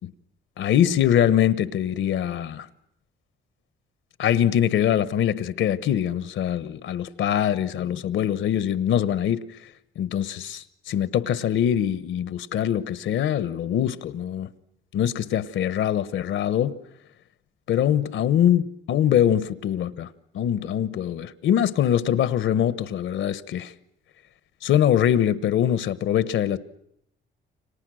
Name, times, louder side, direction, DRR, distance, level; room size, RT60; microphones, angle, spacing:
voice 1, 0.6-2.7 4.2-9.4 10.0-14.5 14.9-16.8 17.7-18.6 18.9-20.1 20.3-23.7 24.6-26.6, left 10 dB, 75° left, 1.2 m, -23 dB
29.5 x 25.5 x 6.4 m
cardioid pair, 90°, 20 cm